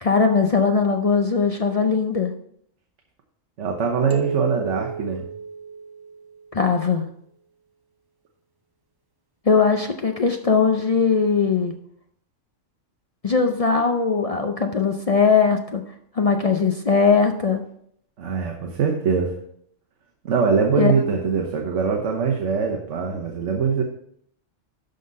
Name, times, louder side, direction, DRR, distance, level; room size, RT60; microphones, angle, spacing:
voice 1, 0.0-2.3 6.5-7.0 9.5-11.7 13.2-15.8 16.1-17.6 20.8-20.9, left 5 dB, 50° left, 5 dB, 0.4 m, -20 dB
voice 2, 3.6-5.3 18.2-19.4 20.2-23.8, right 5 dB, 70° right, 1 dB, 1.3 m, -22 dB
sound 1, 4.1-6.5, right 5 dB, 25° right, 0.7 m, -32 dB
12.0 x 4.0 x 5.3 m, 0.68 s
omnidirectional pair, 1.3 m